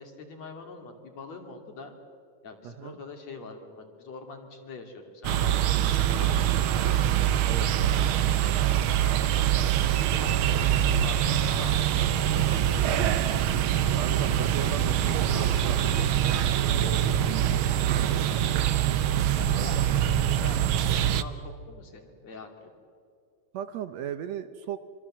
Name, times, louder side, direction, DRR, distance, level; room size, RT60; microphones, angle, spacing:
voice 1, 0.0-1.9 2.4-6.4 6.8-7.7 8.7-9.2 9.5-9.9 10.2-14.0 14.6-14.7 15.1-16.4 16.8-18.5 19.4-22.5, left 3 dB, 60° left, 4 dB, 3.9 m, -45 dB
voice 2, 2.6-3.0 7.5-7.7 14.0-16.4 16.8-17.2 19.5-19.9 23.5-24.8, right 9 dB, 70° right, 10 dB, 1.9 m, -37 dB
sound 1, 5.2-21.2, right 10 dB, 90° right, 1.1 m, -24 dB
25.5 x 25.5 x 7.6 m, 2.3 s
omnidirectional pair, 3.5 m